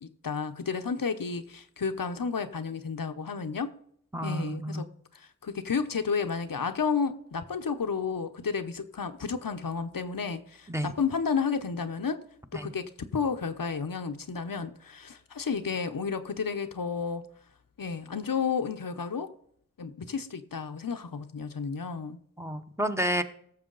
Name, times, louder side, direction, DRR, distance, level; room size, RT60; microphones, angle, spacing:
voice 1, 0.0-3.7 4.2-4.9 5.1-12.2 12.5-17.3 17.8-19.3 19.8-22.2, left 5 dB, 90° left, 0.8 m, -32 dB
voice 2, 4.1-4.8 10.7-10.9 12.5-12.7 22.4-23.2, equal, 10° right, 0.9 m, -30 dB
16.0 x 6.9 x 3.9 m
wide cardioid pair, 55°, 33 cm